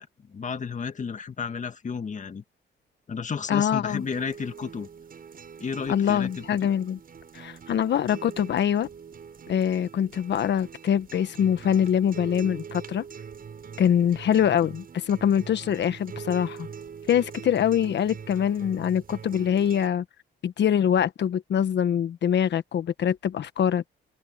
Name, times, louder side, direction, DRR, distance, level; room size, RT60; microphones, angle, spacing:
voice 1, 0.0-2.4 3.1-4.9 5.6-6.5, left 6 dB, 40° left, 1.9 m, -32 dB
voice 2, 3.5-4.0 5.9-7.0 7.3-8.9 9.5-13.0 13.8-16.7 17.1-20.0 20.4-23.8, left 9 dB, 60° left, 1.3 m, -24 dB
sound 1, 3.9-19.9, right 6 dB, 45° right, 7.7 m, -43 dB
open air
cardioid pair, 90°, 20 cm